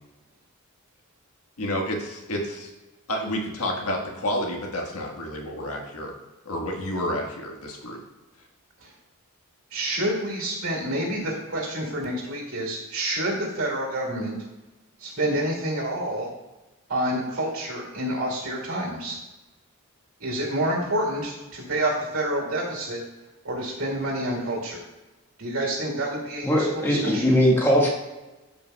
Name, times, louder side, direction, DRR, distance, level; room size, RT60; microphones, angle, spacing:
voice 1, 1.6-2.7 3.1-6.1 6.4-8.0, left 1 dB, 85° left, 1 dB, 1.5 m, -30 dB
voice 2, 9.7-14.4 15.0-16.3 16.9-19.2 20.2-23.0 23.4-24.8 25.4-27.2, right 1 dB, 70° right, -2 dB, 2.3 m, -28 dB
voice 3, 26.4-27.9, equal, 10° left, -3 dB, 1.5 m, -20 dB
13.0 x 5.3 x 2.3 m, 1.1 s
head